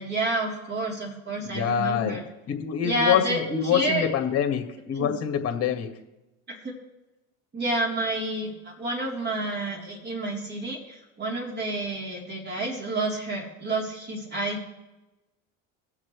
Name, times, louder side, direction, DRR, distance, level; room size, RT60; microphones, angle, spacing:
voice 1, 0.0-2.2 2.8-4.1 4.9-5.1 6.5-6.7 7.5-14.7, right 2 dB, 30° right, -2 dB, 3.9 m, -29 dB
voice 2, 1.4-2.2 2.5-5.9, left 8 dB, 40° left, 5 dB, 2.1 m, -25 dB
22.0 x 7.4 x 3.4 m, 1.0 s
supercardioid pair, 110°, 37 cm